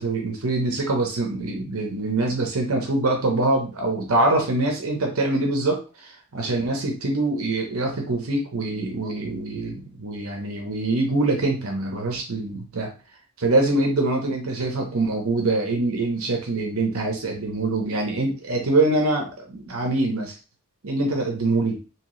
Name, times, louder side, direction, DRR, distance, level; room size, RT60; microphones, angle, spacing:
voice 1, 0.0-12.9 13.4-20.3 20.8-21.8, right 2 dB, 70° right, 1 dB, 0.9 m, -24 dB
3.0 x 2.9 x 3.1 m, 0.33 s
head